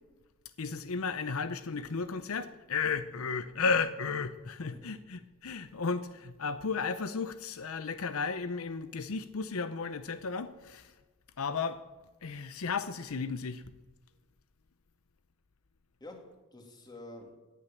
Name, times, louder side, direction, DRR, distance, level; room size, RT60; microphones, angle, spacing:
voice 1, 0.6-10.9 11.4-11.8 12.2-13.6, left 5 dB, 70° left, 12 dB, 0.7 m, -34 dB
voice 2, 4.6-4.9 16.0-17.4, left 1 dB, 20° left, 3 dB, 2.4 m, -49 dB
17.5 x 9.9 x 7.2 m, 1.2 s
head